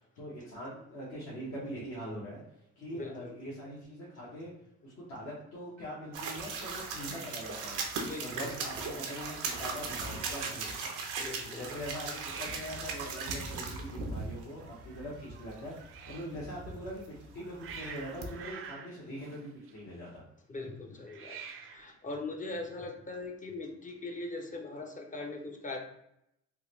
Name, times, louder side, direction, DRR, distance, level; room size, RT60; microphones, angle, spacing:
voice 1, 0.2-2.4 2.8-4.5 4.8-7.8 8.2-10.9 11.4-15.7 16.1-20.2, equal, 65° left, -7 dB, 1.0 m, -42 dB
voice 2, 2.9-3.3 8.0-8.5 11.2-11.6 20.5-21.4 21.7-25.8, left 2 dB, 25° left, 2 dB, 0.5 m, -40 dB
Hiss, 5.8-7.1 7.4-7.8 8.1-8.2 8.4-9.1 12.1-16.4 17.1-20.1 21.0-22.0, right 6 dB, 45° right, 0.4 m, -49 dB
sound 1, 6.1-18.5, right 4 dB, 85° right, 0.6 m, -39 dB
3.5 x 2.1 x 3.0 m, 0.79 s
cardioid pair, 90°, 30 cm